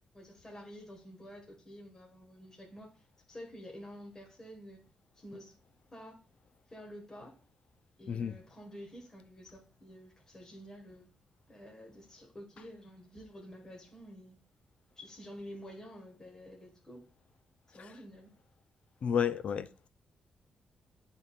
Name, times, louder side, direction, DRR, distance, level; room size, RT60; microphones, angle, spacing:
voice 1, 0.1-4.8 5.2-5.5 5.9-6.2 6.7-7.3 8.0-11.1 11.5-14.4 15.0-17.1 17.7-18.3, equal, 20° left, -1 dB, 1.6 m, -49 dB
voice 2, 19.0-19.7, left 7 dB, 60° left, 12 dB, 0.5 m, -31 dB
11.0 x 3.6 x 2.4 m, 0.38 s
cardioid pair, 105°, 2 cm